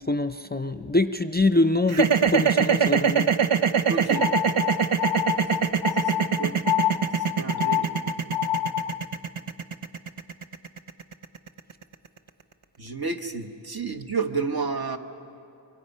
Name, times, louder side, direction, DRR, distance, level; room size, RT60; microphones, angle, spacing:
voice 1, 0.1-3.3, left 2 dB, 20° left, 10 dB, 0.5 m, -24 dB
sound 1, 1.9-12.1, right 7 dB, 85° right, 0.9 m, -23 dB
voice 2, 3.9-4.3 6.4-6.6 7.4-8.0 8.3-8.4 12.8-15.0, right 4 dB, 50° right, 4 dB, 1.2 m, -30 dB
sound 2, 4.1-9.0, left 12 dB, 65° left, 0.5 m, -28 dB
27.5 x 24.0 x 5.5 m, 2.7 s
wide cardioid pair, 45°, 49 cm